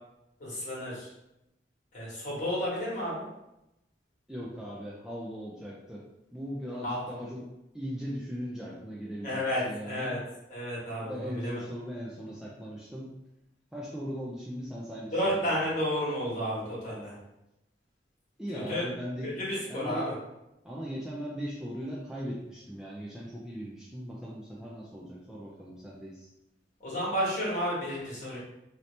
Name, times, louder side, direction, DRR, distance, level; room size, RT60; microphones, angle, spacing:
voice 1, 0.4-1.1 1.9-3.3 6.8-7.0 9.2-9.6 9.9-10.2 10.5-11.6 15.1-17.1 18.5-18.8 19.2-20.1 26.8-28.4, equal, 45° left, -6 dB, 1.3 m, -31 dB
voice 2, 4.3-6.1 6.3-7.5 7.7-10.2 11.0-13.1 13.7-15.6 18.4-19.4 19.7-20.1 20.6-26.3, equal, 5° right, -6 dB, 0.4 m, -39 dB
2.8 x 2.8 x 3.2 m, 0.89 s
head